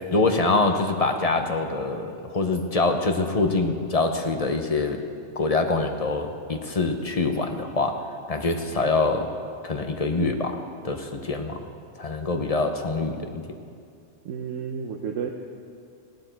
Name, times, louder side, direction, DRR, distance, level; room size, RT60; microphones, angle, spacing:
voice 1, 0.1-5.0 5.4-9.3 9.6-10.6 10.8-11.6 12.0-13.4, left 3 dB, 35° left, 5 dB, 0.8 m, -25 dB
voice 2, 14.2-15.3, right 7 dB, 85° right, 3 dB, 1.1 m, -31 dB
16.0 x 11.5 x 4.5 m, 2.4 s
omnidirectional pair, 1.3 m